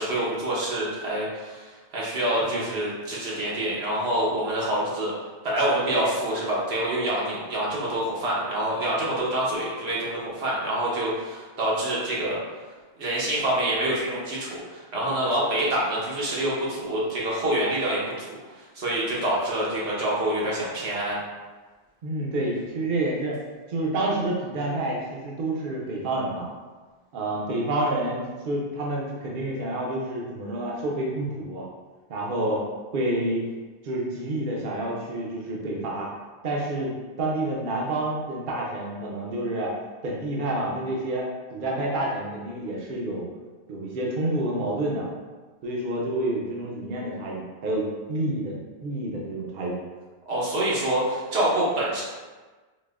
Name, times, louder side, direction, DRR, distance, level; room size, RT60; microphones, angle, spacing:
voice 1, 0.0-5.1 5.4-12.4 13.0-21.2 50.3-52.0, right 1 dB, 85° right, -5 dB, 1.2 m, -26 dB
voice 2, 2.4-2.7 22.0-23.4 23.7-26.5 27.1-31.6 32.1-32.7 32.9-33.5 33.8-36.1 36.4-39.7 40.0-43.3 43.7-45.1 45.6-49.8, right 1 dB, 60° right, -3 dB, 0.7 m, -28 dB
3.9 x 2.6 x 2.4 m, 1.3 s
omnidirectional pair, 1.0 m